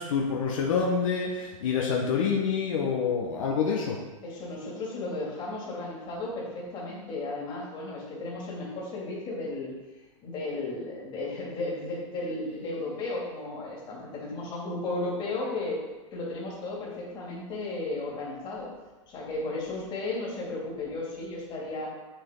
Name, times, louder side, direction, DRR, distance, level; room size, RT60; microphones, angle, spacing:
voice 1, 0.0-4.0, left 6 dB, 70° left, -1 dB, 1.3 m, -27 dB
voice 2, 4.2-9.7 10.2-15.8 16.1-18.7 19.1-21.9, left 2 dB, 30° left, -4 dB, 2.6 m, -34 dB
7.4 x 7.1 x 3.9 m, 1.2 s
supercardioid pair, 150°, 17 cm